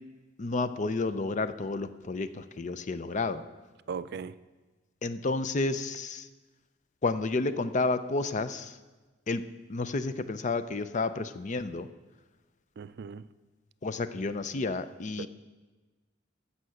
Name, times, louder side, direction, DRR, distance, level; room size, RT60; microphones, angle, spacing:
voice 1, 0.4-3.4 5.0-6.3 7.0-8.8 9.3-9.4 9.7-11.9 13.8-15.3, left 3 dB, 40° left, 12 dB, 0.5 m, -31 dB
voice 2, 3.9-4.4 12.8-13.3 15.2-15.3, right 6 dB, 55° right, 15 dB, 0.4 m, -38 dB
14.5 x 5.7 x 7.5 m, 1.3 s
head